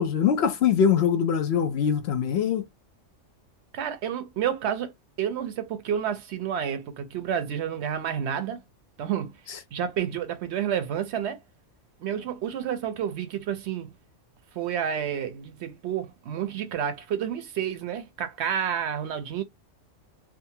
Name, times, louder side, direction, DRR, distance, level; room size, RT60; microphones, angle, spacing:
voice 1, 0.0-2.7, left 7 dB, 65° left, 0.8 m, -23 dB
voice 2, 3.7-8.6 9.0-9.4 9.7-11.4 12.0-13.9 14.5-19.4, right 9 dB, 70° right, 0.8 m, -30 dB
2.6 x 2.4 x 2.7 m
omnidirectional pair, 1.3 m